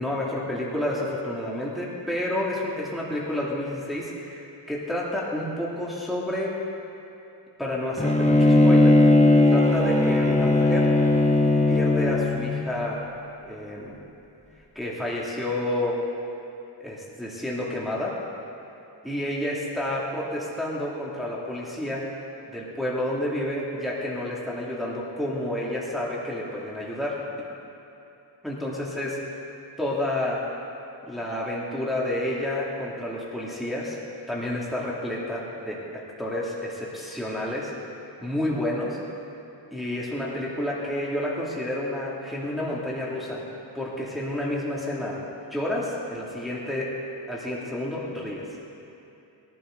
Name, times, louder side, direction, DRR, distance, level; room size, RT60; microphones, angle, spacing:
voice 1, 0.0-6.6 7.6-9.0 9.4-10.9 11.7-13.0 13.4-14.0 14.8-16.0 16.8-18.2 19.0-22.1 22.5-27.5 28.4-29.4 29.8-30.4 31.1-34.0 34.3-37.7 38.2-39.0 39.7-43.4 43.7-45.2 45.5-47.0 47.3-48.5, left 1 dB, ahead, -6 dB, 2.3 m, -30 dB
Bowed string instrument, 8.0-12.6, left 2 dB, 15° left, 1.3 m, -18 dB
21.5 x 11.5 x 3.8 m, 2.9 s
wide cardioid pair, 70°, 44 cm